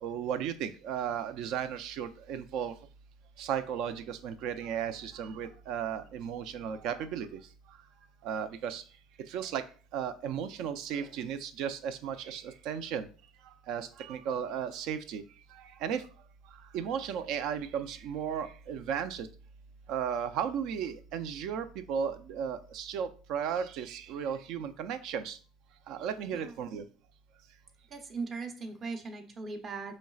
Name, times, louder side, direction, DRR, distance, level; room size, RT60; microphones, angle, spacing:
voice 1, 0.0-2.7 3.4-7.4 8.2-8.8 9.3-9.7 9.9-13.1 13.4-15.2 15.5-16.0 16.7-19.3 19.9-25.4 25.9-26.8, right 8 dB, 70° right, 11 dB, 0.5 m, -35 dB
voice 2, 27.9-30.0, right 4 dB, 40° right, 5 dB, 0.9 m, -39 dB
5.2 x 3.1 x 2.4 m, 0.39 s
supercardioid pair, 100°, 0 cm